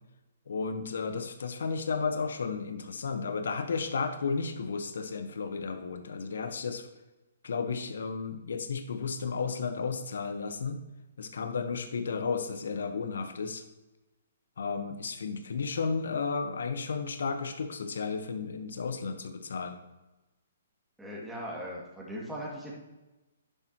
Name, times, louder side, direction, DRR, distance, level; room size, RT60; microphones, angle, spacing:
voice 1, 0.5-6.9 7.4-10.8 11.2-13.6 14.6-19.8, left 5 dB, 75° left, 8 dB, 1.2 m, -33 dB
voice 2, 21.0-22.7, equal, 5° right, -6 dB, 2.3 m, -39 dB
10.5 x 10.5 x 3.0 m, 1.1 s
hypercardioid pair, 140°, 0 cm